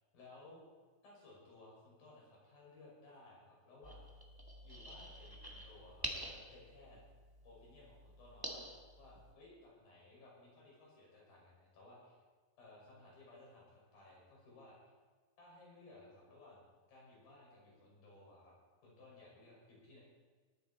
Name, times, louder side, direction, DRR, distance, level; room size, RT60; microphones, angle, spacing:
voice 1, 0.1-0.6 1.0-4.0 4.6-7.0 7.4-12.2 12.6-14.9 15.4-18.5 18.8-20.0, left 2 dB, 70° left, -4 dB, 7.5 m, -59 dB
sound 1, 3.8-9.3, equal, 15° right, 0.8 m, -48 dB
19.5 x 14.0 x 4.3 m, 1.5 s
omnidirectional pair, 4.3 m